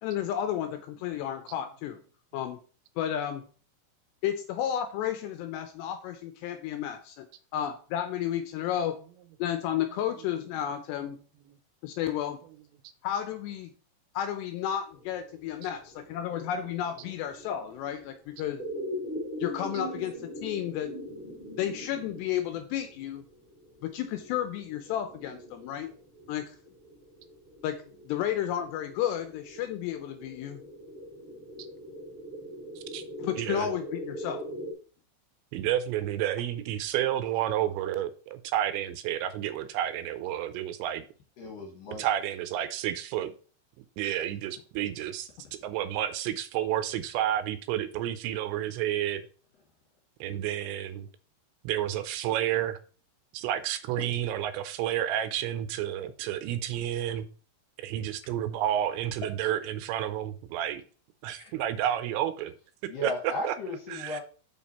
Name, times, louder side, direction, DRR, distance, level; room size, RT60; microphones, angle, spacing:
voice 1, 0.0-2.0 2.3-2.6 3.0-3.4 4.2-7.3 7.5-9.0 9.4-11.2 11.8-12.4 13.0-13.7 14.2-18.6 19.4-20.9 21.6-23.2 23.8-25.9 26.3-26.6 27.6-30.6 33.2-34.4 54.0-54.1 61.4-61.6, left 10 dB, 80° left, 2.6 m, -32 dB
sound 1, 14.9-34.7, equal, 15° left, 2.3 m, -42 dB
voice 2, 33.4-33.7 35.5-41.1 42.0-43.3 44.0-45.3 45.6-49.2 50.2-51.1 51.6-52.8 53.3-57.3 57.8-60.8 61.2-62.5 63.0-63.1 63.4-63.5 63.9-64.2, right 11 dB, 85° right, 2.9 m, -30 dB
voice 3, 41.4-42.1 62.9-64.2, left 2 dB, 60° left, 2.6 m, -35 dB
7.1 x 6.1 x 4.2 m
omnidirectional pair, 5.4 m